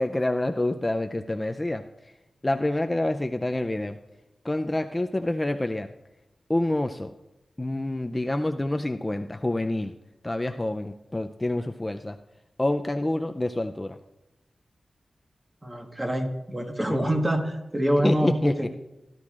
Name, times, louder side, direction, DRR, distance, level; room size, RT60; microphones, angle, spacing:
voice 1, 0.0-1.8 2.4-4.0 4.4-5.9 6.5-7.1 7.6-9.9 10.2-12.2 12.6-14.0 16.9-17.0 18.0-18.6, left 1 dB, 20° left, 6 dB, 0.4 m, -27 dB
voice 2, 15.6-18.3, equal, 20° right, 3 dB, 1.4 m, -26 dB
17.0 x 11.5 x 2.4 m, 0.97 s
wide cardioid pair, 95°, 0 cm